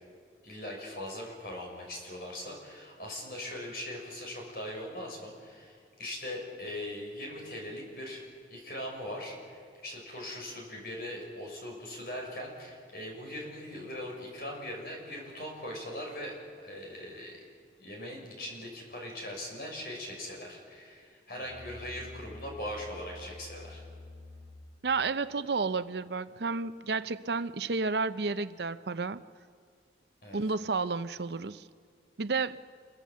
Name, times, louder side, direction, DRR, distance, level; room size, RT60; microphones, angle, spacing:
voice 1, 0.4-8.2 8.5-16.3 16.6-17.5 17.8-23.8 30.2-30.4, left 1 dB, 55° left, 0 dB, 6.3 m, -40 dB
Musical instrument, 21.3-24.8, left 2 dB, 15° left, 5.9 m, -48 dB
voice 2, 24.8-29.2 30.3-31.6 32.2-32.6, right 4 dB, 70° right, 14 dB, 0.7 m, -31 dB
27.0 x 22.5 x 7.5 m, 2.1 s
head